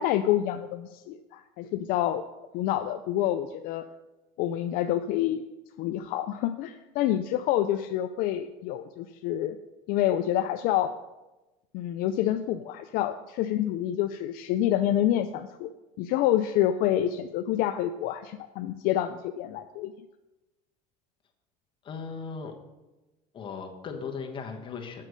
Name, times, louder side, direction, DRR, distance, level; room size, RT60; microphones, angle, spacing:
voice 1, 0.0-2.2 2.5-3.8 4.4-5.4 5.8-9.6 9.9-10.9 11.7-15.7 16.0-19.9, left 12 dB, 60° left, 8 dB, 0.5 m, -27 dB
voice 2, 21.8-22.5 23.3-25.1, left 5 dB, 30° left, 2 dB, 1.2 m, -37 dB
7.6 x 6.2 x 6.5 m, 1.1 s
cardioid pair, 145°, 17 cm